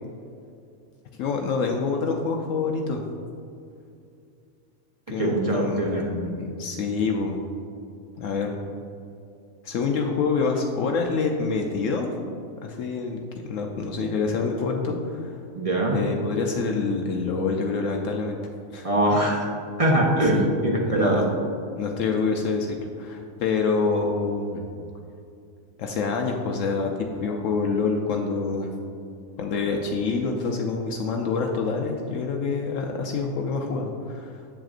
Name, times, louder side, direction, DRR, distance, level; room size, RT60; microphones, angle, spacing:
voice 1, 1.2-3.0 5.1-7.4 8.2-8.6 9.6-12.1 12.6-15.4 15.9-18.4 18.7-18.9 20.3-21.2 21.8-24.6 25.8-28.7 29.4-34.4, left 4 dB, 75° left, 2 dB, 0.9 m, -26 dB
voice 2, 5.2-6.0 15.6-16.0 18.8-19.5 19.8-21.2, right 1 dB, 35° right, -1 dB, 0.6 m, -22 dB
7.6 x 7.4 x 2.5 m, 2.5 s
omnidirectional pair, 1.4 m